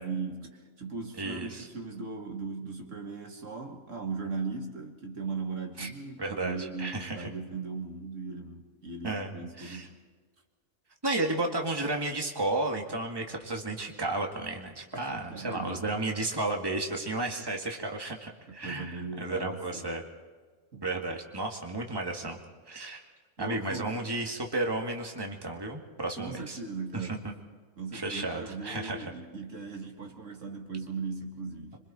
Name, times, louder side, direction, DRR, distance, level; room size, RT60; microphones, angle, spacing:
voice 1, 0.0-9.9 14.9-15.9 18.5-20.0 20.7-20.8 22.9-23.0 23.4-24.1 26.0-27.3 27.8-31.8, right 4 dB, 65° right, 2 dB, 2.3 m, -38 dB
voice 2, 1.2-1.7 5.8-5.9 6.2-7.3 9.0-9.9 11.0-20.0 20.8-22.4 22.7-23.0 23.4-26.6 26.9-27.1 27.9-29.1, right 2 dB, 15° right, 1 dB, 2.1 m, -33 dB
27.0 x 24.0 x 4.4 m, 1.4 s
omnidirectional pair, 1.4 m